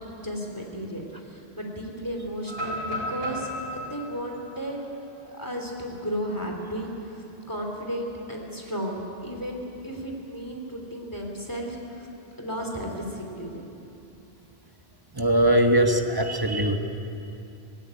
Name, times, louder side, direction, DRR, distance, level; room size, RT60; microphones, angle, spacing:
voice 1, 0.2-4.9 5.3-12.1 12.4-13.5, equal, 20° left, 0 dB, 2.9 m, -34 dB
sound 1, 2.5-6.4 6.8-6.9 7.4-7.7 9.0-9.9, equal, 70° right, 7.0 m, -36 dB
voice 2, 15.1-16.8, right 1 dB, 20° right, 4 dB, 1.2 m, -21 dB
18.0 x 16.5 x 9.5 m, 2.8 s
omnidirectional pair, 1.0 m